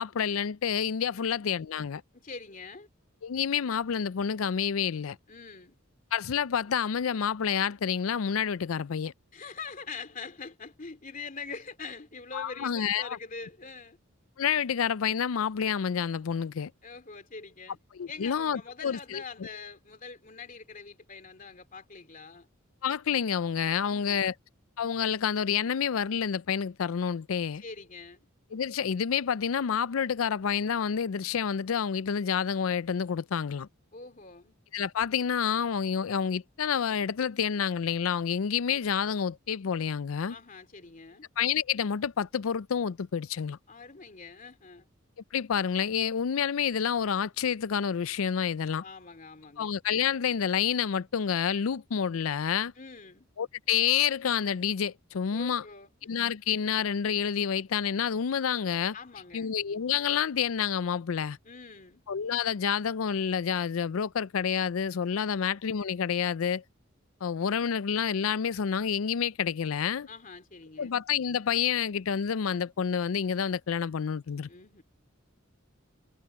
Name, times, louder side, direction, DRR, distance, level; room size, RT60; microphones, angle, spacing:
voice 1, 0.0-2.0 3.2-5.2 6.1-9.1 12.3-13.2 14.4-16.7 17.9-19.5 22.8-24.3 24.8-27.6 28.5-33.7 34.7-40.4 41.4-43.6 45.3-48.8 49.6-52.7 53.4-55.6 56.0-58.9 59.3-61.4 62.1-66.6 67.2-70.1 70.8-74.5, left 7 dB, 85° left, 0.5 m, -28 dB
voice 2, 2.1-2.9 5.3-5.8 9.3-14.0 16.8-17.8 18.1-22.5 23.8-24.3 27.6-28.2 33.9-34.5 40.3-41.3 43.7-44.9 48.8-49.7 52.8-53.3 55.3-56.1 58.9-59.5 61.4-62.0 65.3-65.4 70.1-70.9 74.5-74.8, left 4 dB, 40° left, 2.8 m, -44 dB
head